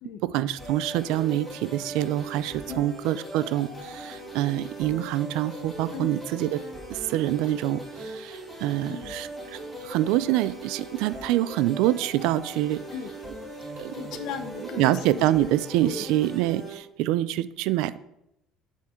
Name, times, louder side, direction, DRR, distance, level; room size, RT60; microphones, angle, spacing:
voice 1, 0.3-6.6 6.9-9.6 9.8-12.8 13.8-13.9 14.7-18.0, right 14 dB, 80° right, 16 dB, 0.4 m, -26 dB
sound 1, 0.6-16.7, right 1 dB, 5° left, 2.9 m, -40 dB
voice 2, 5.9-6.5 8.9-9.1 12.9-13.1 13.9-15.3 15.8-16.1, left 7 dB, 60° left, 11 dB, 0.8 m, -37 dB
7.4 x 7.3 x 4.4 m, 0.82 s
cardioid pair, 165°, 0 cm